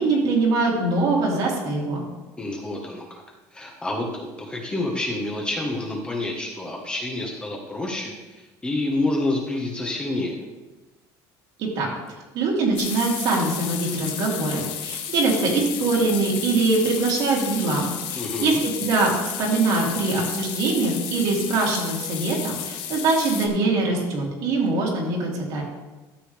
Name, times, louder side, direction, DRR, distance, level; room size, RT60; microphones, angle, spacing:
voice 1, 0.0-2.0 11.6-11.9 12.3-25.6, right 3 dB, 60° right, -3 dB, 3.1 m, -23 dB
voice 2, 2.4-3.2 3.5-10.3 18.1-18.6, left 2 dB, 10° left, -1 dB, 1.4 m, -28 dB
sound 1, 12.7-23.5, left 10 dB, 90° left, 1.2 m, -33 dB
13.0 x 7.5 x 3.5 m, 1.1 s
cardioid pair, 150°, 8 cm